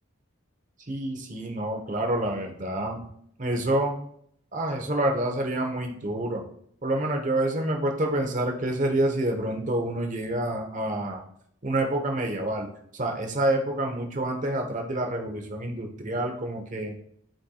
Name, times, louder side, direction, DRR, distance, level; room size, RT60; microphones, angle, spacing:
voice 1, 0.9-3.0 3.4-3.9 4.5-6.4 6.8-11.2 11.6-12.7 12.9-17.0, right 1 dB, 40° right, 3 dB, 1.0 m, -27 dB
11.5 x 4.5 x 2.4 m, 0.68 s
head